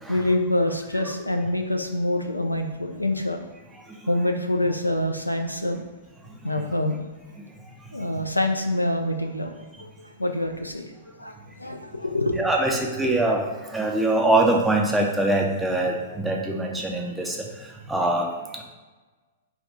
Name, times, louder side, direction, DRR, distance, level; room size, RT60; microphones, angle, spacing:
voice 1, 0.1-3.4 4.1-5.8 6.4-7.0 7.9-10.9 11.2-12.4, left 1 dB, 90° left, 4 dB, 0.4 m, -26 dB
voice 2, 12.4-18.6, right 2 dB, 5° right, 0 dB, 0.4 m, -23 dB
3.4 x 2.3 x 3.9 m, 1.3 s
figure-of-eight pair, 105°, 0 cm